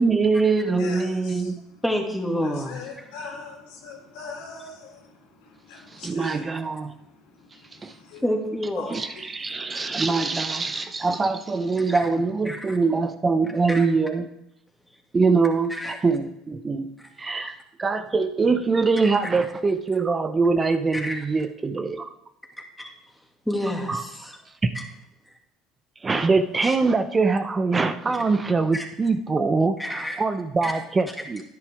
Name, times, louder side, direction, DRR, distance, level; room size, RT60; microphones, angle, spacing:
voice 1, 0.0-1.6 5.9-6.9 7.8-7.9 8.9-14.3 15.1-16.9 17.2-22.1 23.9-24.0 24.6-24.7 26.0-31.4, right 4 dB, 25° right, 9 dB, 0.7 m, -23 dB
voice 2, 0.8-1.5 2.7-5.1 5.4-6.5 7.7-8.2 8.8-9.0, left 4 dB, 80° left, 0 dB, 2.9 m, -40 dB
voice 3, 1.8-3.1 8.2-9.0 11.9-12.1 12.5-12.8 13.7-13.9 15.7-16.0 17.0-17.1 19.0-19.3 20.9-21.2 22.8-22.9 23.5-24.4 24.7-24.8 25.3-25.4 26.6-26.8 28.7-28.8 29.8-30.2 30.6-30.8, equal, 5° left, 0 dB, 2.3 m, -29 dB
10.5 x 10.0 x 3.5 m, 0.83 s
supercardioid pair, 85°, 0 cm